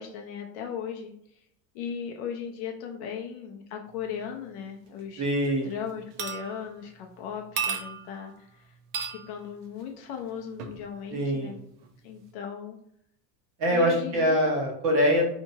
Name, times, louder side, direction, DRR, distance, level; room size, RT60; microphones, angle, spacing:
voice 1, 0.0-1.4 1.7-5.2 5.6-8.7 9.0-11.6 12.0-12.8 13.7-14.6, left 7 dB, 45° left, 2 dB, 0.5 m, -37 dB
sound 1, 5.0-5.1 5.4-5.7 6.2-6.9 7.6-8.3 8.9-9.3 10.6-10.8 11.8-11.9, right 7 dB, 75° right, 0.8 m, -33 dB
voice 2, 5.2-5.7 11.1-11.6 13.6-15.2, equal, 35° right, 0 dB, 1.0 m, -24 dB
4.3 x 2.8 x 2.7 m, 0.72 s
cardioid pair, 165°, 49 cm